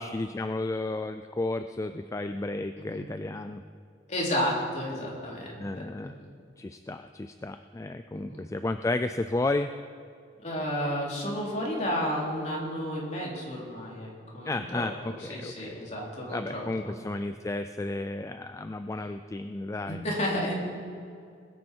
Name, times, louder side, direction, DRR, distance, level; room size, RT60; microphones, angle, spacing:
voice 1, 0.0-3.6 5.6-6.1 6.6-9.7 14.4-15.8 16.3-20.0, left 2 dB, 15° left, 9 dB, 0.3 m, -32 dB
voice 2, 4.1-5.5 6.0-6.1 8.1-8.4 10.4-16.7 19.9-20.5, equal, 40° left, -4 dB, 3.5 m, -32 dB
21.0 x 9.4 x 4.6 m, 2.3 s
head